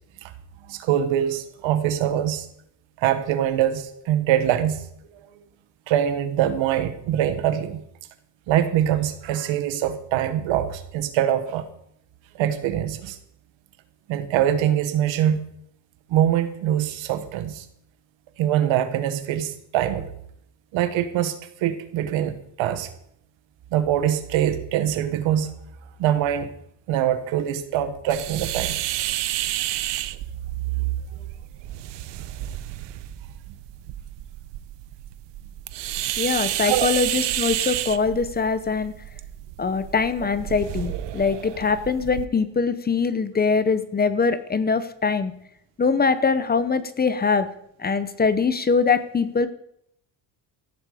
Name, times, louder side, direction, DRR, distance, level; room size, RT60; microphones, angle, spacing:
voice 1, 0.7-2.5 3.0-4.8 5.1-5.2 5.9-7.8 8.5-11.6 12.3-13.2 14.1-15.5 16.1-17.7 18.4-20.1 20.7-22.3 22.6-22.9 23.7-25.5 26.0-26.5 26.9-28.8 30.8-30.9 31.2-31.3 36.6-36.9, right 10 dB, 90° right, 10 dB, 1.5 m, -23 dB
sound 1, 28.1-42.3, right 14 dB, 70° right, 0.8 m, -31 dB
voice 2, 36.2-38.9 39.6-45.3 45.8-47.5 47.8-49.5, left 5 dB, 20° left, 13 dB, 0.7 m, -22 dB
15.0 x 10.5 x 5.0 m, 0.73 s
cardioid pair, 150°, 45 cm